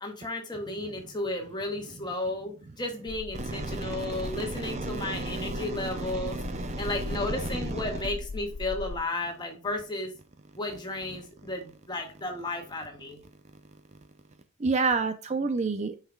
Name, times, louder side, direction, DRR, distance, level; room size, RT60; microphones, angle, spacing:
voice 1, 0.0-6.4 6.8-10.1 10.6-13.2, left 2 dB, 20° left, 2 dB, 1.6 m, -33 dB
sound 1, 3.1-9.0, left 3 dB, 75° left, 0.5 m, -38 dB
voice 2, 3.3-8.0 14.6-16.0, right 4 dB, 30° right, 10 dB, 0.5 m, -31 dB
8.9 x 5.7 x 2.3 m, 0.36 s
head